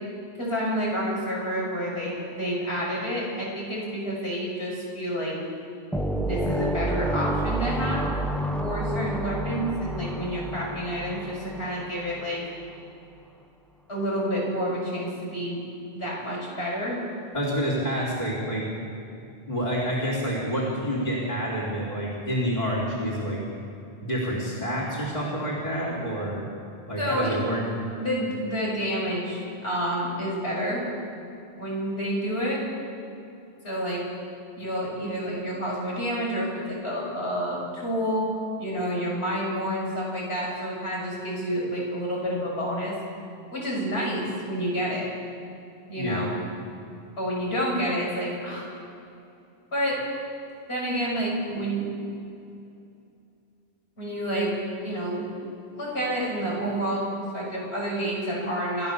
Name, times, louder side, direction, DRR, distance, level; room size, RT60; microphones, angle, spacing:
voice 1, 0.4-5.3 6.2-8.1 8.6-12.4 13.9-15.6 15.9-17.0 27.0-27.3 28.0-30.9 31.6-32.6 33.6-34.0 34.6-38.3 38.6-43.0 43.5-45.1 45.9-46.3 47.2-48.7 49.7-50.0 50.7-51.9 54.0-54.5 54.8-55.3 55.7-58.9, equal, 75° left, -4 dB, 6.9 m, -29 dB
sound 1, 5.9-12.4, right 1 dB, ahead, 0.9 m, -29 dB
voice 2, 17.3-18.7 19.5-23.4 24.0-26.5 26.9-27.6 45.9-46.3, equal, 40° left, -5 dB, 3.8 m, -28 dB
28.5 x 13.0 x 7.0 m, 2.6 s
omnidirectional pair, 1.1 m